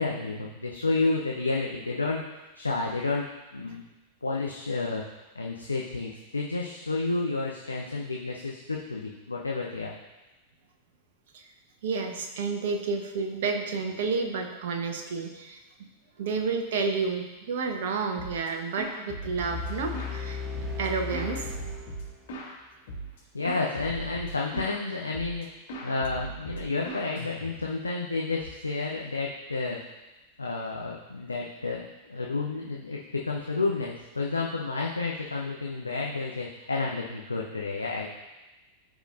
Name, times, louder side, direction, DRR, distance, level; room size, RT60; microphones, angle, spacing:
voice 1, 0.0-2.2 2.6-3.9 4.2-5.0 5.3-9.9 23.3-25.5 25.8-29.8 30.4-38.1, left 3 dB, 80° left, -1 dB, 0.7 m, -30 dB
voice 2, 11.8-15.6 16.2-20.4 20.8-21.5, right 4 dB, 55° right, 4 dB, 1.0 m, -30 dB
sound 1, 18.2-18.5 18.8-20.2 20.5-22.5 22.9-23.2 23.4-24.8 25.1-25.4 25.7-27.8, right 2 dB, 55° left, 2.2 m, -39 dB
sound 2, 19.4-22.4, left 6 dB, 25° right, 1.1 m, -36 dB
14.0 x 5.1 x 2.6 m, 1.1 s
figure-of-eight pair, 90°, 0 cm